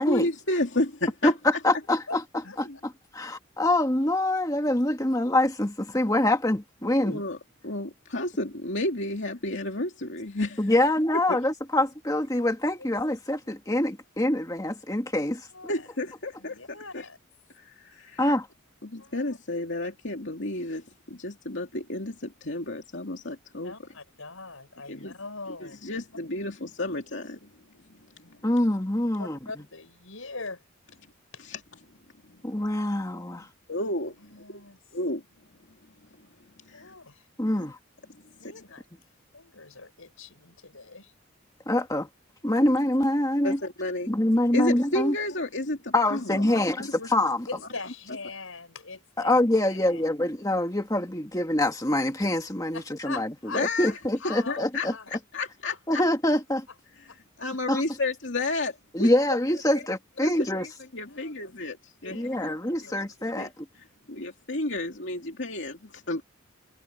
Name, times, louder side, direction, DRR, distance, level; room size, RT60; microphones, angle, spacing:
voice 1, 0.0-1.3 2.6-2.8 7.0-7.4 7.6-10.7 11.3-11.4 15.7-16.6 16.9-17.0 17.5-18.3 18.8-23.7 24.9-25.1 25.6-27.4 31.4-31.6 32.3-32.4 33.7-34.4 34.9-35.2 36.6-36.9 37.6-37.7 38.4-38.6 43.4-44.1 44.5-47.1 53.5-54.0 54.5-56.0 57.0-57.1 57.4-59.1 60.2-62.5 62.8-63.0 63.4-63.5 63.8-66.2, left 2 dB, 60° left, 2.7 m, -32 dB
voice 2, 1.6-2.2 2.6-7.2 10.6-15.4 18.2-18.5 28.4-29.4 32.4-33.5 37.4-37.8 41.7-42.1 42.4-43.6 44.1-45.1 45.9-47.5 49.2-53.3 53.5-54.9 55.9-56.7 57.7-57.8 58.9-60.7 62.1-63.5, left 1 dB, 15° left, 1.7 m, -25 dB
voice 3, 15.3-15.9 16.4-17.2 19.0-19.4 23.6-25.8 28.2-28.7 29.2-30.6 33.3-33.5 34.2-34.8 36.7-37.2 38.4-38.8 39.3-41.1 47.5-49.3 49.7-50.0 52.7-53.6 54.2-55.4 57.1-57.2 61.1-61.5 62.0-62.5, left 3 dB, 90° left, 6.3 m, -42 dB
head